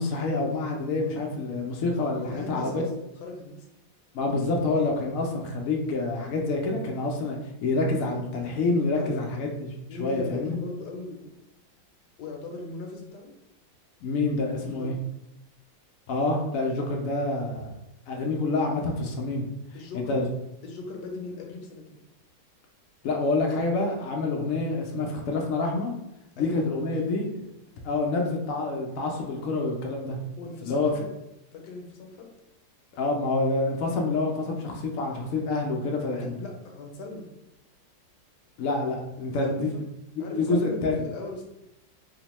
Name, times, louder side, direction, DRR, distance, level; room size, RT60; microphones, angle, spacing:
voice 1, 0.0-2.8 4.1-10.6 14.0-14.9 16.1-17.7 18.1-19.5 19.9-20.3 23.0-25.9 26.4-27.3 27.8-30.2 30.6-30.9 33.0-36.4 38.6-39.7 40.1-41.0, left 3 dB, 90° left, 0 dB, 0.7 m, -27 dB
voice 2, 2.2-3.7 8.9-9.1 9.9-11.3 12.2-13.3 14.6-14.9 19.7-20.2 20.6-22.0 26.4-26.5 26.9-27.0 30.4-31.1 31.5-32.3 36.1-37.3 39.4-39.8 40.2-41.4, left 3 dB, 75° left, 1 dB, 1.1 m, -39 dB
3.5 x 2.1 x 2.9 m, 0.87 s
omnidirectional pair, 2.0 m